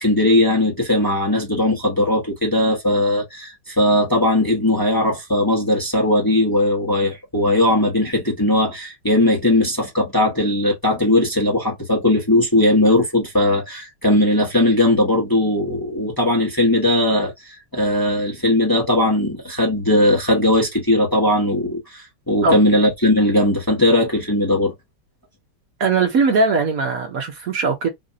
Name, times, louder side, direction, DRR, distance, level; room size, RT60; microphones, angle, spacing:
voice 1, 0.0-24.7, left 1 dB, 15° left, 1.1 m, -18 dB
voice 2, 25.8-27.9, right 4 dB, 60° right, 1.2 m, -19 dB
4.2 x 2.6 x 2.6 m
omnidirectional pair, 1.9 m